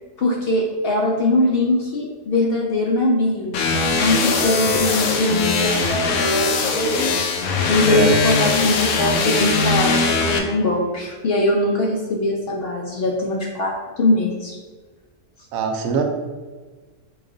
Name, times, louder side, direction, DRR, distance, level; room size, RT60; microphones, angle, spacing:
voice 1, 0.2-14.6 15.7-15.9, left 2 dB, 60° left, 0 dB, 0.6 m, -22 dB
sound 1, 3.5-10.4, left 3 dB, 90° left, 1.0 m, -20 dB
voice 2, 15.5-16.0, right 6 dB, 80° right, 4 dB, 1.0 m, -22 dB
4.8 x 2.3 x 3.8 m, 1.4 s
omnidirectional pair, 1.4 m